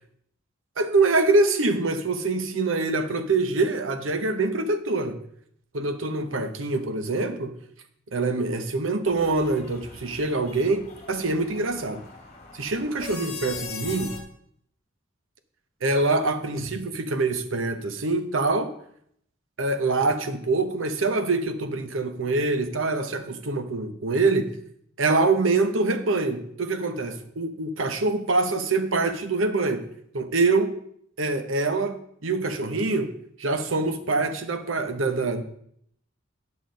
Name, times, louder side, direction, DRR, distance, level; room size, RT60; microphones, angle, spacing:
voice 1, 0.8-5.2 5.7-7.6 8.1-12.1 12.5-14.2 15.8-18.7 19.6-24.5 25.0-29.8 30.1-30.7 31.2-33.1 33.4-35.4, right 3 dB, 85° right, 0.9 m, -25 dB
sound 1, 9.0-14.2, left 4 dB, 35° left, 1.7 m, -41 dB
9.4 x 6.1 x 5.1 m
head